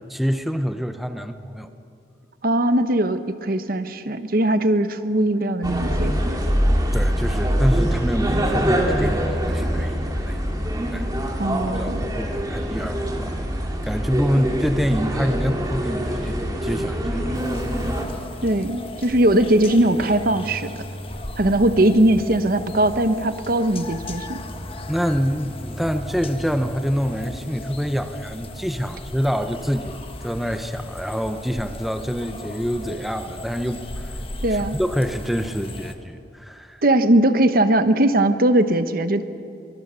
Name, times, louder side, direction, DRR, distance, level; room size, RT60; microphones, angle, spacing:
voice 1, 0.1-1.7 6.9-10.5 10.9-11.4 11.8-16.4 16.6-17.5 24.9-34.1 34.7-36.8, equal, ahead, 8 dB, 0.7 m, -26 dB
voice 2, 2.4-6.4 11.4-12.0 18.4-20.7 21.4-24.4 34.4-34.8 36.8-39.2, right 1 dB, 50° right, 10 dB, 1.0 m, -20 dB
sound 1, 5.6-18.1, equal, 20° right, 2.4 m, -24 dB
sound 2, 17.3-35.9, left 1 dB, 30° left, 1.4 m, -36 dB
23.5 x 21.0 x 7.0 m, 2.5 s
head